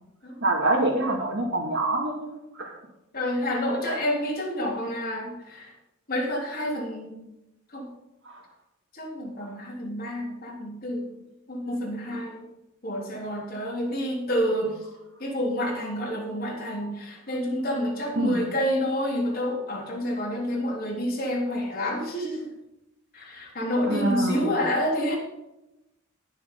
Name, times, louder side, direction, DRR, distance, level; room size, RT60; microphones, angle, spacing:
voice 1, 0.4-2.3 2.5-2.7 3.9-4.0 18.1-18.4 23.9-24.6, right 2 dB, 60° right, -2 dB, 2.7 m, -25 dB
voice 2, 3.1-5.7 6.1-7.2 7.7-7.9 8.9-11.1 11.5-12.5 12.8-14.8 15.2-22.5 23.1-25.2, equal, 45° left, -2 dB, 3.9 m, -28 dB
20.0 x 7.0 x 4.0 m, 0.91 s
head